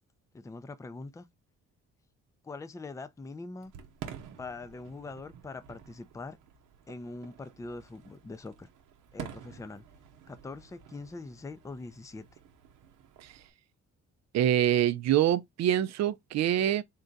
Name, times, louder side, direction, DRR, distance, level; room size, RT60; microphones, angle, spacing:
voice 1, 0.3-1.3 2.4-3.7 4.4-6.4 6.9-8.7 9.1-9.8 10.3-12.2, left 3 dB, 10° left, 0.4 m, -43 dB
Fireworks, 3.6-13.5, right 8 dB, 90° right, 0.8 m, -49 dB
voice 2, 14.3-16.8, right 11 dB, 60° right, 0.5 m, -25 dB
3.8 x 2.2 x 3.9 m
cardioid pair, 90°, 30 cm